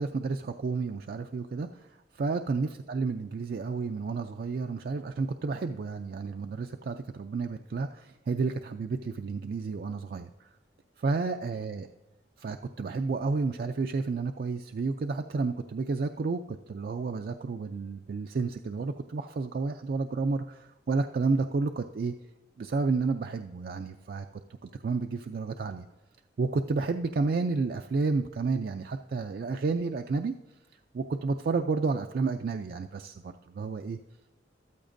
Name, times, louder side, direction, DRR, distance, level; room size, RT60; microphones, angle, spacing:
voice 1, 0.0-1.9 2.1-10.5 11.0-11.9 12.4-22.1 22.6-24.3 24.6-25.8 26.4-30.3 30.9-34.0, right 4 dB, 55° right, 6 dB, 0.3 m, -31 dB
13.5 x 12.5 x 2.6 m, 1.0 s
head